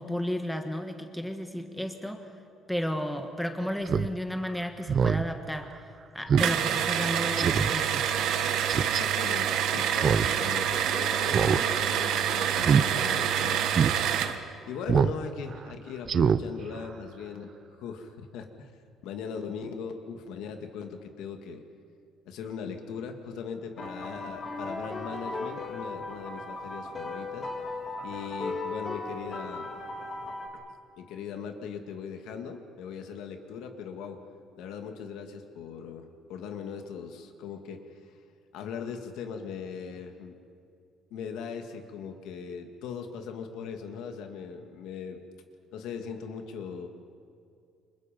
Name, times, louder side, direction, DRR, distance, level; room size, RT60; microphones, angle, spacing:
voice 1, 0.0-2.2 2.7-5.7 6.1-8.1, equal, ahead, 5 dB, 1.3 m, -33 dB
Speech synthesizer, 3.9-4.1 4.5-4.6 4.9-5.2 5.6-5.7 6.3-6.5 6.9-7.0 7.4-7.7 8.7-9.0 9.9-10.3 10.6-10.7 11.3-11.6 11.9-12.1 12.6-12.8 13.3-13.4 13.7-13.9 14.9-15.2 15.5-15.6 16.1-16.4 16.7-16.8, right 7 dB, 30° right, 0.6 m, -24 dB
sound 1, 6.4-14.4, right 9 dB, 60° right, 1.4 m, -27 dB
voice 2, 8.8-13.7 14.7-18.7 19.0-21.6 22.3-27.5 28.0-29.7 30.5-30.6 31.0-34.2 34.6-37.9 38.5-40.4 41.1-45.2 45.7-46.9, left 6 dB, 75° left, 5 dB, 2.3 m, -39 dB
sound 2, 23.8-30.5, left 2 dB, 25° left, 2.7 m, -37 dB
29.0 x 26.0 x 5.4 m, 2.4 s
cardioid pair, 175°, 0 cm